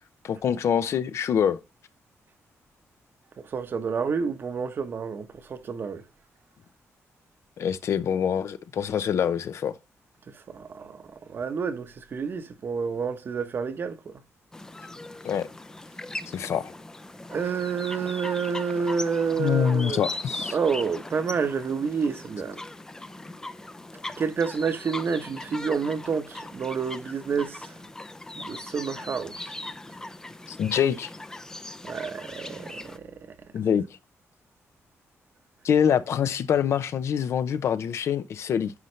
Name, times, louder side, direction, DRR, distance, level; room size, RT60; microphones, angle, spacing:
voice 1, 0.2-1.6 7.6-9.8 15.2-15.5 16.3-16.7 19.4-20.6 30.5-31.1 33.5-33.8 35.6-38.7, left 8 dB, 60° left, 0.6 m, -25 dB
voice 2, 3.5-6.0 10.5-11.0 11.3-14.0 17.3-20.0 20.5-22.6 24.2-27.7 28.4-29.4 31.8-33.1, right 5 dB, 45° right, 0.9 m, -29 dB
sound 1, 14.5-33.0, left 2 dB, 10° left, 0.5 m, -39 dB
9.6 x 5.5 x 3.2 m
wide cardioid pair, 155°, 5 cm